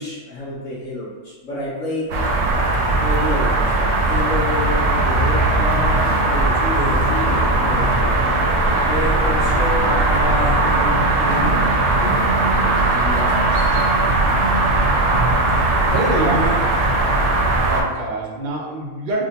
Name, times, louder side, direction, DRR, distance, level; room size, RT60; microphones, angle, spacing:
voice 1, 0.0-2.1 3.0-8.1 8.8-13.7, left 1 dB, 60° left, -9 dB, 1.7 m, -29 dB
sound 1, 2.1-17.8, right 2 dB, 60° right, 0.8 m, -18 dB
sound 2, 6.8-11.5, equal, 20° left, 0.4 m, -33 dB
voice 2, 15.8-16.8 17.6-19.3, right 1 dB, 75° right, -3 dB, 0.4 m, -25 dB
4.8 x 2.1 x 2.7 m, 1.3 s
omnidirectional pair, 1.5 m